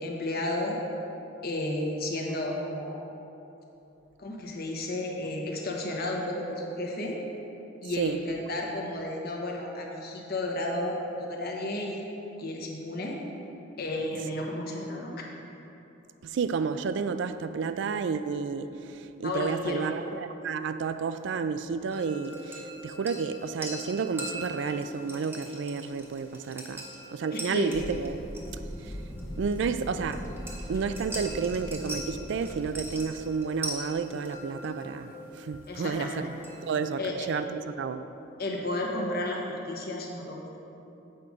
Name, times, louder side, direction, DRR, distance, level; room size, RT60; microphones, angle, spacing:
voice 1, 0.0-0.8 1.4-3.0 4.2-7.2 7.8-12.0 12.4-13.2 13.8-15.2 19.2-19.9 27.3-27.9 35.7-36.2 37.0-37.3 38.4-40.5, left 1 dB, 50° left, -1 dB, 1.1 m, -32 dB
voice 2, 16.2-26.8 27.1-28.2 28.8-29.0 29.4-30.3 30.7-36.3 36.7-38.1, right 5 dB, 65° right, 11 dB, 0.3 m, -31 dB
sound 1, 21.9-36.8, right 1 dB, 10° right, 1.0 m, -42 dB
sound 2, 27.7-33.0, equal, 15° left, 0.7 m, -40 dB
7.8 x 5.3 x 4.8 m, 3.0 s
head